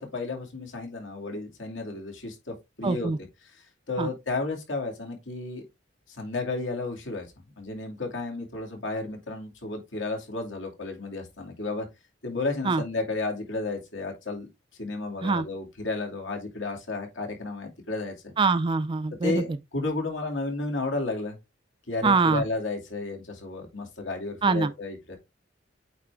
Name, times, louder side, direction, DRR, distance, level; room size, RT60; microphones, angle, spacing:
voice 1, 0.0-3.1 3.4-5.6 6.1-7.3 7.6-11.9 12.2-14.5 14.8-18.3 19.2-21.4 21.9-25.2, left 3 dB, 80° left, 2.5 m, -32 dB
voice 2, 2.8-3.2 4.0-4.1 12.7-12.8 15.2-15.4 18.4-19.4 22.0-22.4 24.4-24.7, right 4 dB, 25° right, 0.4 m, -23 dB
8.6 x 3.6 x 3.5 m
head